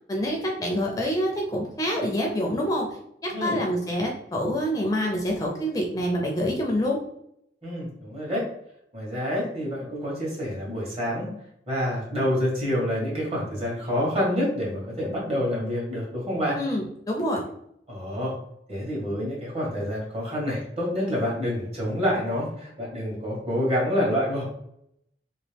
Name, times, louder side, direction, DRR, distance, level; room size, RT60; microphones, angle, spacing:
voice 1, 0.1-2.9 3.2-7.0 16.6-17.4, equal, 20° left, 0 dB, 0.5 m, -26 dB
voice 2, 7.6-8.5 8.9-11.3 11.7-16.6 17.9-18.3 18.7-24.4, equal, 35° right, -4 dB, 1.4 m, -27 dB
3.0 x 2.8 x 3.3 m, 0.73 s
head